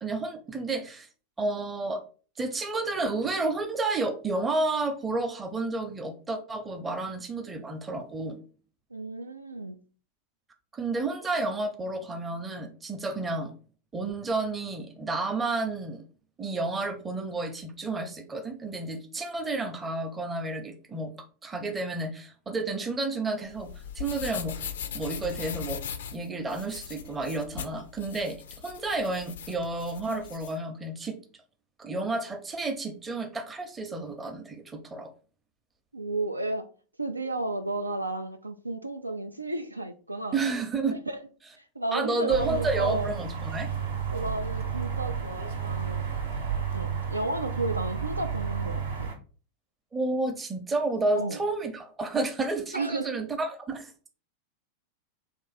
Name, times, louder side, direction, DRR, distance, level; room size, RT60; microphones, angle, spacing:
voice 1, 0.0-1.1 1.4-2.0 2.4-8.4 10.7-13.5 13.9-16.0 16.4-23.7 24.0-24.7 24.9-25.8 26.1-28.4 28.6-31.2 31.8-35.1 40.3-41.0 41.9-43.7 49.9-54.1, right 2 dB, 15° right, 0.6 m, -31 dB
voice 2, 8.9-9.8 35.9-36.7 37.0-40.4 40.9-41.2 41.6-43.2 44.1-46.0 46.7-49.1 51.1-51.4 52.7-53.2, right 2 dB, 85° right, 0.3 m, -33 dB
sound 1, 23.4-30.5, left 8 dB, 60° left, 0.4 m, -39 dB
sound 2, 42.3-49.2, right 7 dB, 65° right, 0.8 m, -32 dB
3.3 x 2.5 x 4.0 m
figure-of-eight pair, 90°, 0 cm